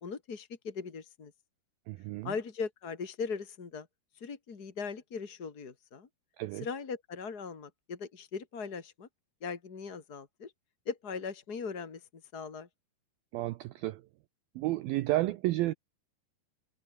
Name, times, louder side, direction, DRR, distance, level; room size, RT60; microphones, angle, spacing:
voice 1, 0.0-1.3 2.2-3.9 4.1-6.1 6.6-9.1 9.4-10.5 10.8-12.1 12.3-12.7, left 5 dB, 35° left, 1.7 m, -39 dB
voice 2, 1.9-2.4 6.4-6.7 13.3-14.0 14.6-15.7, right 17 dB, 75° right, 2.2 m, -31 dB
omnidirectional pair, 4.9 m